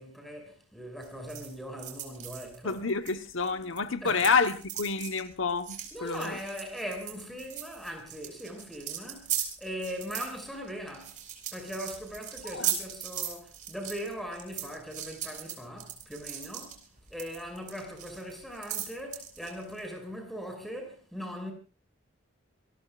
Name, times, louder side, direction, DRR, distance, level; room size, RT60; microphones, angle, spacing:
voice 1, 0.0-2.8 4.0-4.2 5.9-11.2 11.5-16.8 17.1-21.5, equal, ahead, 5.6 m, -40 dB
sound 1, 1.0-3.8 4.1-19.8, right 10 dB, 40° right, 4.6 m, -38 dB
voice 2, 2.6-6.4 12.5-12.8, left 4 dB, 70° left, 1.1 m, -29 dB
27.5 x 19.5 x 2.4 m
head